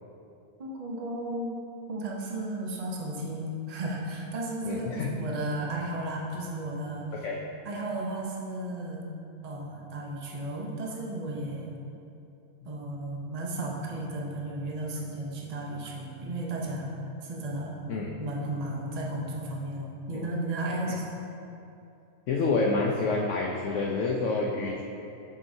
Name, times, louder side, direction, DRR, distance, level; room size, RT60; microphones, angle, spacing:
voice 1, 0.6-1.6 1.9-7.3 7.6-9.0 9.4-11.7 12.7-16.9 17.2-17.8 18.2-21.0, right 1 dB, 75° right, -2 dB, 0.3 m, -34 dB
voice 2, 4.6-5.1 7.2-7.4 17.9-18.1 20.1-20.2 20.9-21.0 22.3-24.8, left 3 dB, 70° left, -1 dB, 0.7 m, -28 dB
7.3 x 4.9 x 2.6 m, 2.7 s
omnidirectional pair, 1.7 m